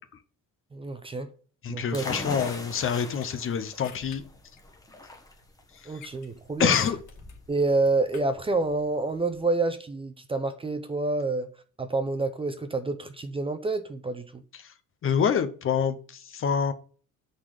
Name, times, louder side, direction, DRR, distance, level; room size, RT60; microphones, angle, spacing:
voice 1, 0.7-1.3 1.7-2.1 5.8-6.7 7.5-11.5 11.8-14.4, right 3 dB, 15° right, 0.7 m, -28 dB
voice 2, 1.6-4.2 5.7-6.0 6.6-7.0 14.5-14.7 15.0-16.7, left 7 dB, 40° left, 0.9 m, -26 dB
sound 1, 1.9-9.4, left 2 dB, 10° left, 1.2 m, -42 dB
sound 2, 2.4-3.3 3.8-4.2 4.6-4.7 6.0-6.3 6.7-7.4 8.1-8.2, left 7 dB, 65° left, 2.3 m, -44 dB
9.6 x 4.2 x 6.5 m
cardioid pair, 165°, 32 cm